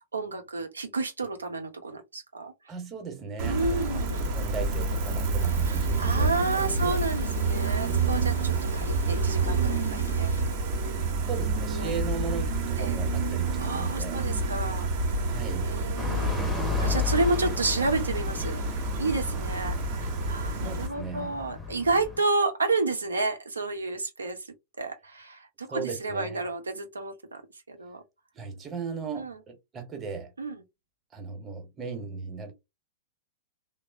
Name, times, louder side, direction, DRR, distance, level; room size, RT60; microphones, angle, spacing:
voice 1, 0.1-2.5 3.4-4.3 5.6-11.2 11.7-11.9 12.8-13.0 13.6-15.2 15.6-18.6 19.0-27.4 27.7-28.0 29.1-29.4 30.4-30.6, right 3 dB, 75° right, 0.6 m, -31 dB
voice 2, 2.7-4.0 4.3-7.1 11.2-14.3 15.3-15.7 20.6-21.4 25.7-26.4 28.3-30.3 31.1-32.5, right 5 dB, 20° right, 0.9 m, -37 dB
Gull seagull, 3.4-20.9, right 3 dB, 45° right, 0.8 m, -28 dB
sound 1, 5.4-10.4, right 1 dB, 80° left, 0.6 m, -36 dB
sound 2, 16.0-22.2, left 7 dB, 5° left, 0.7 m, -33 dB
3.1 x 2.0 x 2.5 m
figure-of-eight pair, 95°, 0 cm